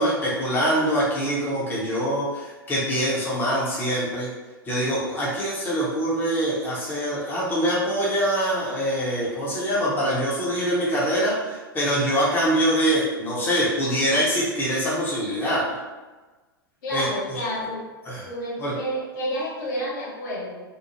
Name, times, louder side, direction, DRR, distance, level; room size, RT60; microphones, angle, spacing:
voice 1, 0.0-4.3 4.7-15.6 16.9-17.4 18.1-18.3 18.6-18.7, equal, 15° left, -6 dB, 0.7 m, -24 dB
voice 2, 16.8-17.8 18.2-20.6, equal, 55° left, -5 dB, 0.9 m, -30 dB
2.8 x 2.0 x 3.0 m, 1.2 s
figure-of-eight pair, 95°, 13 cm